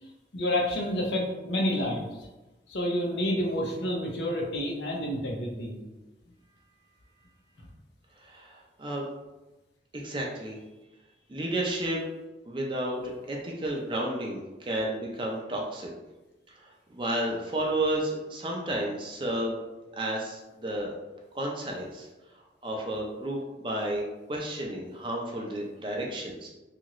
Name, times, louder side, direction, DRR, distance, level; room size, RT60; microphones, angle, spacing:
voice 1, 0.0-2.0 2.7-5.8, left 1 dB, 80° left, 0 dB, 0.6 m, -29 dB
voice 2, 8.2-9.1 9.9-10.6 11.3-12.0 12.5-15.9 16.6-19.6 20.0-20.9 21.3-22.1 22.6-24.0 24.3-26.5, right 1 dB, 30° right, -1 dB, 0.4 m, -32 dB
2.8 x 2.4 x 2.9 m, 1.1 s
head